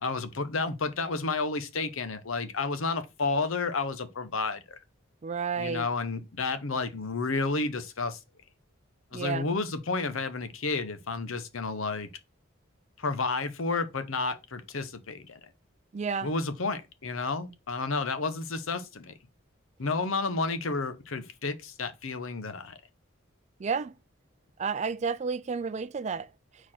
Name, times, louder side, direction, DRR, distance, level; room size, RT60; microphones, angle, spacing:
voice 1, 0.0-4.8 5.6-8.2 9.1-12.1 13.0-15.4 16.2-19.1 19.8-22.8, left 3 dB, 80° left, 0.9 m, -31 dB
voice 2, 5.2-5.9 9.1-9.5 15.9-16.3 23.6-24.0 24.6-26.7, right 5 dB, 35° right, 0.3 m, -31 dB
4.6 x 4.4 x 5.7 m
head